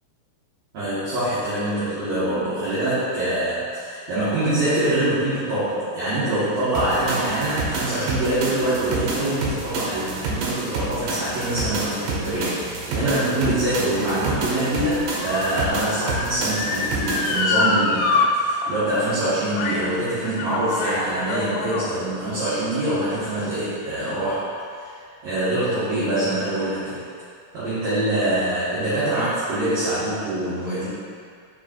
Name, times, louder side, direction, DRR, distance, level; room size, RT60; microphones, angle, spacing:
voice 1, 0.7-24.5 24.7-24.9 25.2-27.0 27.5-30.9, right 1 dB, 50° right, -14 dB, 2.5 m, -24 dB
sound 1, 6.8-17.4, right 3 dB, 75° right, 2.8 m, -29 dB
Motor vehicle (road) / Siren, 13.1-18.3 18.6-18.7 19.6-19.9 20.2-21.9 22.6-22.7, left 3 dB, 80° left, 2.1 m, -26 dB
6.1 x 5.3 x 4.5 m, 2.3 s
omnidirectional pair, 4.7 m